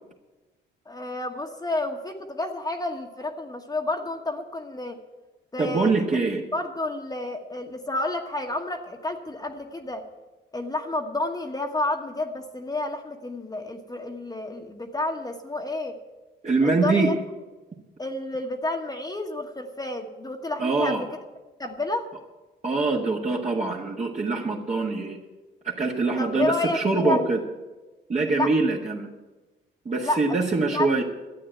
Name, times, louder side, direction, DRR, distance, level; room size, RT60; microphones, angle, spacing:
voice 1, 0.9-5.0 5.5-5.9 6.5-10.0 10.5-15.9 16.6-17.2 18.0-21.1 21.6-22.1 26.2-27.2 28.3-28.5 30.0-30.2 30.7-31.0, left 2 dB, 20° left, 2 dB, 1.3 m, -30 dB
voice 2, 5.6-6.4 16.4-17.1 20.6-21.0 22.6-25.2 25.6-27.4 28.1-29.1 29.9-31.0, right 3 dB, 35° right, -3 dB, 1.7 m, -24 dB
12.0 x 8.7 x 9.1 m, 1.2 s
cardioid pair, 90°, 20 cm